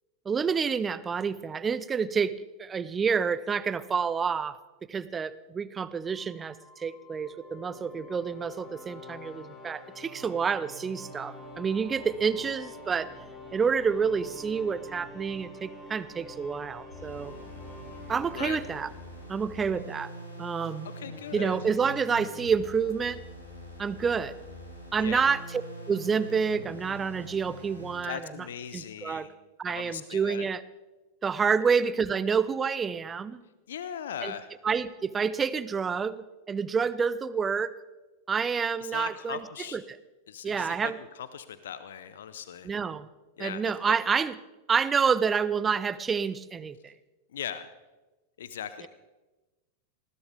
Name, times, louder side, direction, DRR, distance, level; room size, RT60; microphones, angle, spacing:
voice 1, 0.3-2.3 2.6-4.6 4.9-13.1 13.5-17.3 18.1-18.9 19.3-20.1 20.4-20.9 21.3-23.2 23.8-24.3 24.9-25.6 25.9-28.3 28.7-29.3 29.6-30.6 31.2-33.4 34.2-34.3 34.6-37.7 38.3-39.4 39.7-40.0 40.4-41.0 42.6-43.1 43.4-44.4 44.7-46.9 48.8-48.9, right 6 dB, 20° right, 17 dB, 0.6 m, -28 dB
sound 1, 6.0-20.5, equal, 5° left, 4.9 m, -49 dB
sound 2, 6.8-19.8, left 2 dB, 20° left, 3.2 m, -51 dB
sound 3, 16.9-28.0, equal, 85° left, 5.7 m, -44 dB
voice 2, 20.9-21.6 25.0-25.2 28.0-29.3 29.7-30.5 33.7-34.5 38.8-39.8 40.3-42.7 43.4-43.9 47.3-47.6 48.4-48.9, left 9 dB, 60° left, 13 dB, 0.7 m, -39 dB
20.0 x 16.5 x 3.5 m, 1.1 s
figure-of-eight pair, 90°, 0 cm